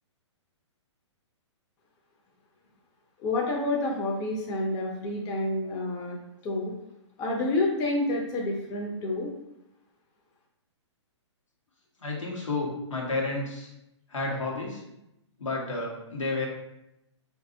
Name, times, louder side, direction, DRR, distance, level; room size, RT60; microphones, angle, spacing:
voice 1, 3.2-6.2 6.4-6.7 7.2-9.3, left 2 dB, 25° left, -1 dB, 0.5 m, -28 dB
voice 2, 12.0-13.7 14.1-14.8 15.4-16.5, left 3 dB, 90° left, -3 dB, 1.2 m, -31 dB
3.9 x 2.6 x 2.6 m, 0.85 s
hypercardioid pair, 135°, 16 cm